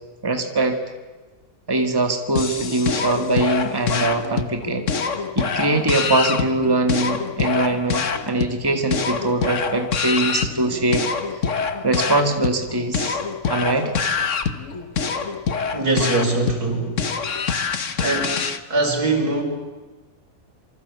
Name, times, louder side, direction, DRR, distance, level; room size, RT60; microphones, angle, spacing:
voice 1, 0.2-0.8 1.7-4.9 5.4-11.1 11.8-13.2 13.5-13.9, right 2 dB, 15° right, 6 dB, 2.1 m, -22 dB
sound 1, 2.4-18.6, left 5 dB, 55° left, 1.6 m, -25 dB
voice 2, 15.7-17.1 18.0-18.4 18.7-19.4, right 2 dB, 90° right, 3 dB, 5.6 m, -22 dB
27.0 x 24.5 x 8.4 m, 1.2 s
omnidirectional pair, 1.6 m